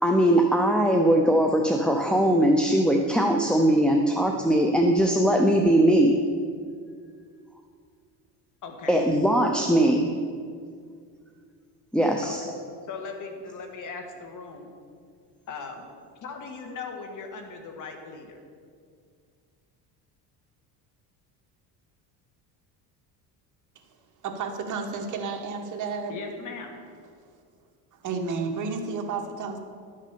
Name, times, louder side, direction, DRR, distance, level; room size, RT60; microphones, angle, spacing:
voice 1, 0.0-6.2 8.9-10.1 11.9-12.4, right 1 dB, ahead, 2 dB, 0.6 m, -20 dB
voice 2, 8.6-9.0 12.2-12.6 12.9-14.7 15.5-15.9 16.2-18.4 26.1-26.8, left 4 dB, 50° left, 4 dB, 1.8 m, -38 dB
voice 3, 24.2-26.1 27.9-29.6, right 4 dB, 50° right, 4 dB, 1.4 m, -31 dB
11.5 x 6.4 x 6.8 m, 2.2 s
cardioid pair, 120°, 40 cm